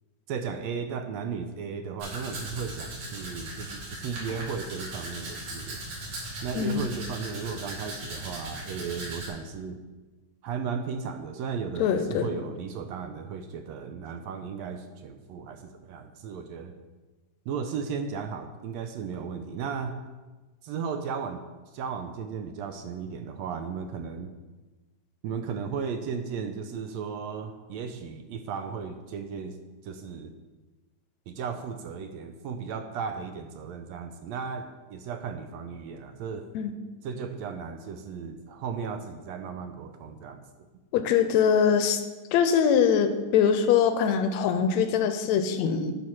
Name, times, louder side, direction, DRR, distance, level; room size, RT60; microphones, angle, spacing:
voice 1, 0.3-5.8 6.4-9.8 10.4-16.7 17.5-20.0 20.6-21.4 21.7-24.3 25.2-29.6 29.8-30.3 31.3-36.5 37.0-40.4, right 6 dB, 80° right, 7 dB, 1.6 m, -35 dB
Domestic sounds home sounds, 2.0-9.3, right 1 dB, 55° right, 2.8 m, -38 dB
voice 2, 6.6-6.9 11.8-12.3 36.5-36.7 40.9-42.0 42.3-45.9, left 7 dB, 80° left, 8 dB, 1.8 m, -23 dB
11.0 x 5.7 x 4.3 m, 1.2 s
omnidirectional pair, 3.4 m